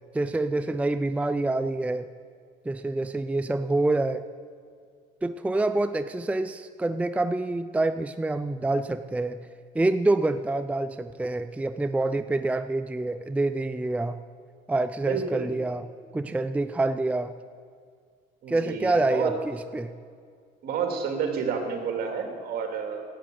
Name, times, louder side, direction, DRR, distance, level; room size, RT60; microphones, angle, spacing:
voice 1, 0.1-2.1 2.7-4.2 5.2-9.4 9.7-14.2 14.7-15.9 16.1-17.3 18.5-19.9, right 2 dB, 10° right, 11 dB, 0.4 m, -26 dB
voice 2, 15.0-15.5 18.4-19.3 20.6-23.0, right 6 dB, 65° right, 4 dB, 2.7 m, -30 dB
11.5 x 9.0 x 9.2 m, 2.1 s
cardioid pair, 110°, 17 cm